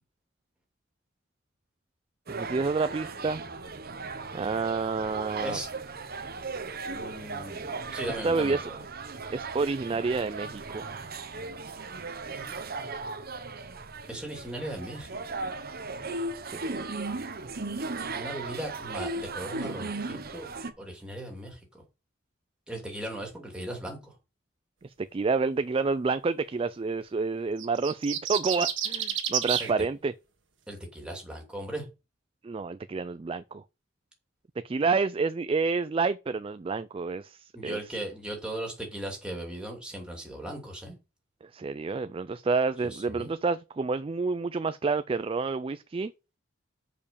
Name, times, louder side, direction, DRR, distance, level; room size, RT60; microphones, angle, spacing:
voice 1, 2.3-3.4 4.3-5.6 8.2-8.7 9.3-10.9 16.4-16.6 24.8-30.1 32.4-33.6 34.6-37.9 41.4-46.1, right 4 dB, 30° right, 0.3 m, -29 dB
sound 1, 2.3-20.7, right 3 dB, 50° right, 1.0 m, -37 dB
voice 2, 6.9-8.8 14.1-15.1 18.1-20.5 20.8-21.6 22.7-24.1 29.6-29.7 30.7-31.8 37.5-40.9 42.8-43.3, right 1 dB, 5° right, 2.7 m, -38 dB
sound 2, 27.6-29.7, right 9 dB, 75° right, 1.6 m, -30 dB
6.8 x 5.2 x 6.9 m
head